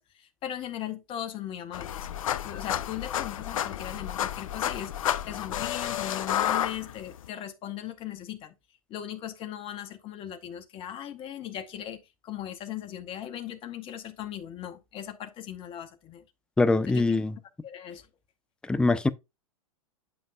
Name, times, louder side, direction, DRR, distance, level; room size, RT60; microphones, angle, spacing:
voice 1, 0.0-2.0 2.4-8.5 8.9-16.2 16.9-17.2 17.6-18.1, left 11 dB, 30° left, 1.0 m, -38 dB
sound 1, 1.7-7.3, left 11 dB, 70° left, 0.5 m, -31 dB
voice 2, 16.6-17.3 18.6-19.1, left 3 dB, 5° left, 0.4 m, -23 dB
8.8 x 5.2 x 2.3 m
hypercardioid pair, 100°, 18 cm